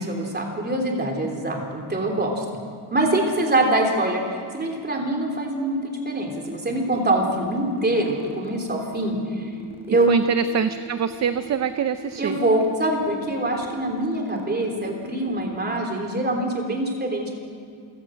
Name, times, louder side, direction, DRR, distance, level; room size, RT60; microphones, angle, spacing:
voice 1, 0.0-2.4 2.9-9.5 9.9-10.1 12.2-17.3, right 1 dB, 20° right, 1 dB, 3.4 m, -24 dB
sound 1, 6.3-15.6, right 2 dB, 5° right, 3.3 m, -42 dB
voice 2, 9.9-12.4 14.3-14.4, right 7 dB, 35° right, 10 dB, 0.6 m, -25 dB
27.5 x 17.0 x 6.4 m, 2.2 s
cardioid pair, 165°, 48 cm